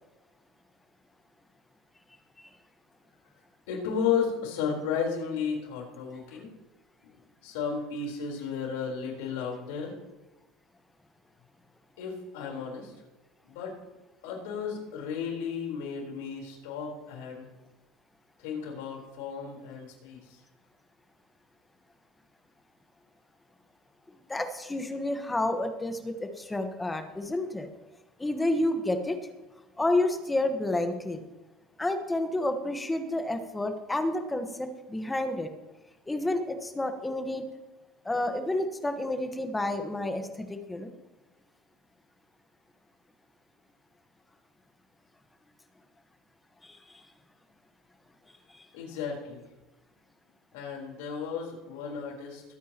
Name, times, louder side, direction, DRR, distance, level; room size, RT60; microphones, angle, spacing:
voice 1, 3.7-6.5 7.4-10.0 12.0-12.9 13.4-13.7 14.2-17.5 18.4-20.4 48.7-49.4 50.5-52.4, left 6 dB, 85° left, 0 dB, 4.1 m, -33 dB
voice 2, 24.3-27.7 28.2-29.2 29.8-31.2 31.8-35.5 36.1-37.4 38.0-40.9 46.6-46.8, left 1 dB, 10° left, 6 dB, 1.3 m, -30 dB
21.5 x 9.3 x 3.0 m, 1.1 s
supercardioid pair, 130°, 0 cm